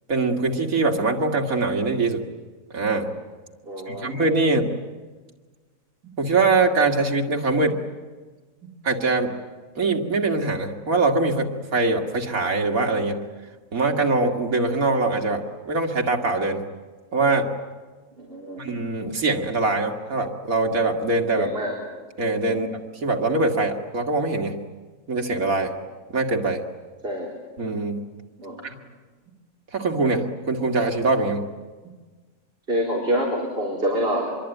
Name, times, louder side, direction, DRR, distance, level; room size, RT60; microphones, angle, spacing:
voice 1, 0.1-2.2 2.7-3.1 3.9-4.7 6.2-7.8 8.8-9.3 9.8-13.1 13.7-15.4 15.7-16.6 17.1-17.5 18.6-21.5 22.2-22.7 23.0-24.5 25.1-25.7 26.1-26.6 27.6-28.0 28.6-28.7 29.7-31.4, right 3 dB, 90° right, 2 dB, 2.6 m, -23 dB
voice 2, 3.6-4.1 18.2-18.6 21.4-21.7 22.5-22.6 27.0-27.3 28.4-28.6 32.7-34.3, equal, 45° right, -2 dB, 4.4 m, -26 dB
25.5 x 23.0 x 9.2 m, 1.4 s
omnidirectional pair, 1.4 m